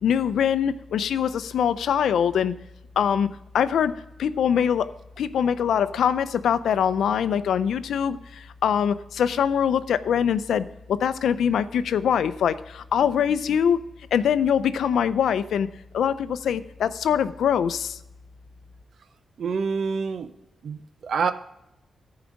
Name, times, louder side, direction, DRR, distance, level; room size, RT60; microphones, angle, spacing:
voice 1, 0.0-2.5 3.0-3.3 3.5-3.9 4.2-4.9 5.2-13.8 14.1-15.7 15.9-18.0, left 8 dB, 90° left, 14 dB, 0.5 m, -23 dB
voice 2, 19.4-20.3 20.6-21.3, right 5 dB, 70° right, 11 dB, 0.7 m, -27 dB
14.5 x 4.9 x 5.1 m, 0.89 s
cardioid pair, 100°, 0 cm